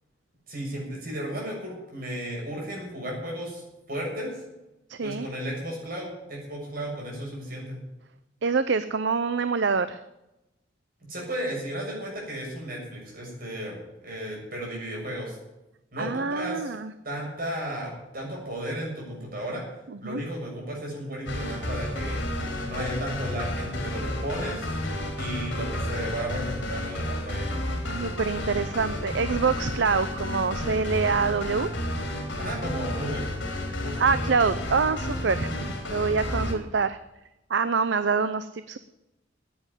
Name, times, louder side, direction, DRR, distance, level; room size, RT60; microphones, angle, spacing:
voice 1, 0.5-4.4 5.0-7.8 11.1-15.4 15.9-16.7 17.0-19.6 20.0-22.2 22.6-24.8 25.2-27.5 32.4-33.2 33.6-34.2, right 1 dB, 50° right, -2 dB, 6.9 m, -34 dB
voice 2, 4.9-5.2 8.4-10.0 16.0-16.9 20.0-20.2 27.8-31.7 34.0-35.5 35.9-37.0 37.5-38.8, right 5 dB, 65° right, 13 dB, 0.6 m, -25 dB
sound 1, 21.3-36.5, left 1 dB, 70° left, 3.6 m, -31 dB
10.5 x 9.7 x 9.8 m, 0.95 s
head